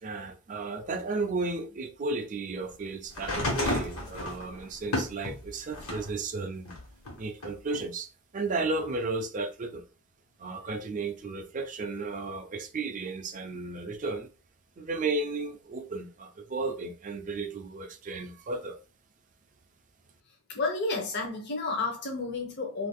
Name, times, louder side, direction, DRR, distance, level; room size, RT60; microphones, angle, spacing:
voice 1, 0.0-6.7 7.2-9.9 10.4-14.3 14.8-18.8, right 3 dB, 35° right, 0.4 m, -34 dB
sound 1, 3.1-6.1 6.6-7.8 8.8-8.9, left 1 dB, 80° left, 1.2 m, -33 dB
voice 2, 20.5-22.9, left 3 dB, 50° left, 0.7 m, -31 dB
2.5 x 2.4 x 3.5 m
head